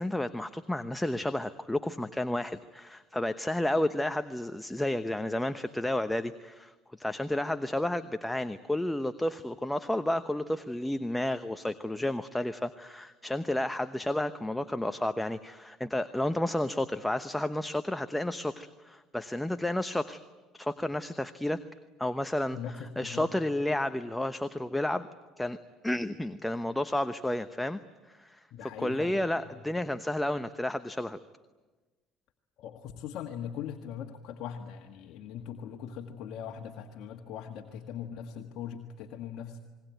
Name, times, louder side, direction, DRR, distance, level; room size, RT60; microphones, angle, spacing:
voice 1, 0.0-6.7 7.0-20.2 20.5-21.6 22.0-22.6 23.0-25.1 25.4-25.6 25.8-27.8 28.1-28.4 28.8-31.2, left 1 dB, 5° left, 10 dB, 0.9 m, -31 dB
voice 2, 22.5-23.3 28.5-29.6 32.6-39.6, left 8 dB, 65° left, 3 dB, 1.6 m, -41 dB
28.5 x 21.0 x 9.2 m, 1.2 s
supercardioid pair, 90°, 0 cm